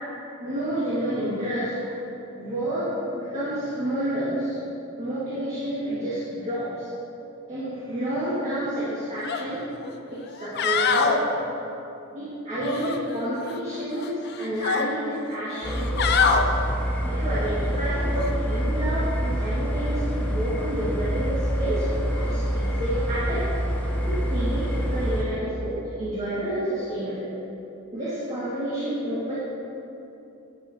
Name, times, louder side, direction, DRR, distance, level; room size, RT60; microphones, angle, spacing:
voice 1, 0.4-1.8 2.3-4.6 5.0-6.9 7.5-9.7 10.1-11.4 12.1-16.6 17.0-23.4 24.0-27.3 27.9-29.3, right 1 dB, 35° right, -11 dB, 1.8 m, -29 dB
sound 1, 9.2-9.4 9.8-9.9 10.4-11.2 12.6-13.6 13.9-14.9 15.6-16.4 18.1-18.3, left 5 dB, 55° left, 0.5 m, -24 dB
sound 2, 15.6-25.2, equal, 10° left, 0.8 m, -26 dB
9.5 x 8.2 x 2.8 m, 2.9 s
head